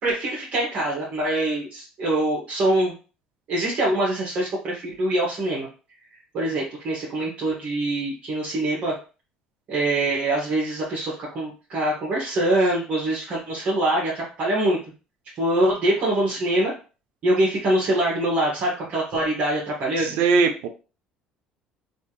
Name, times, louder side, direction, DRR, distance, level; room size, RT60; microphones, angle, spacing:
voice 1, 0.0-3.0 3.5-5.7 6.3-8.9 9.7-14.8 15.4-16.7 17.2-20.2, right 1 dB, 55° right, -5 dB, 1.5 m, -24 dB
voice 2, 20.0-20.7, right 4 dB, 80° right, 6 dB, 0.6 m, -20 dB
3.4 x 2.8 x 3.0 m, 0.34 s
supercardioid pair, 90°, 3 cm